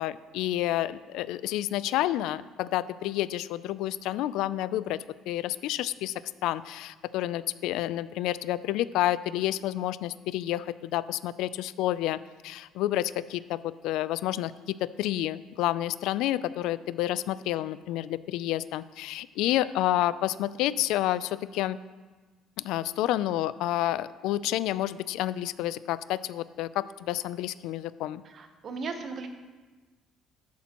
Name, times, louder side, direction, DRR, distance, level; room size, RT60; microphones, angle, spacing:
voice 1, 0.0-5.0 5.3-21.8 22.6-28.2, left 14 dB, 80° left, 17 dB, 0.3 m, -29 dB
voice 2, 28.2-29.3, right 4 dB, 40° right, 6 dB, 0.9 m, -37 dB
13.0 x 8.5 x 3.0 m, 1.3 s
cardioid pair, 155°, 0 cm